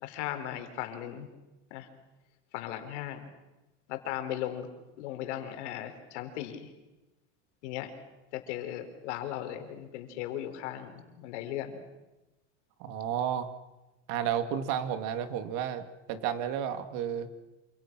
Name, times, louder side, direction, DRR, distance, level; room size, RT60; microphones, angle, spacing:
voice 1, 0.0-1.3 1.7-1.9 2.5-3.2 3.9-4.7 5.0-6.7 7.6-7.9 8.3-11.8, left 12 dB, 70° left, 7 dB, 4.2 m, -37 dB
voice 2, 12.8-13.5 14.1-17.3, right 9 dB, 55° right, 9 dB, 2.4 m, -31 dB
27.5 x 27.0 x 6.2 m, 1.1 s
supercardioid pair, 150°, 36 cm